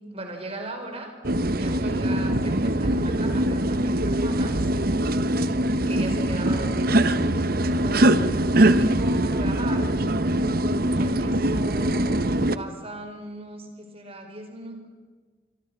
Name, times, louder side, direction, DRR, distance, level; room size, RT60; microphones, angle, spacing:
voice 1, 0.1-1.1 1.6-4.6 5.9-7.2 7.7-9.9 10.9-12.3 12.5-14.9, right 2 dB, 35° right, 5 dB, 5.1 m, -38 dB
sound 1, 1.2-12.6, right 1 dB, 55° right, 1.1 m, -22 dB
27.5 x 23.5 x 6.1 m, 1.5 s
head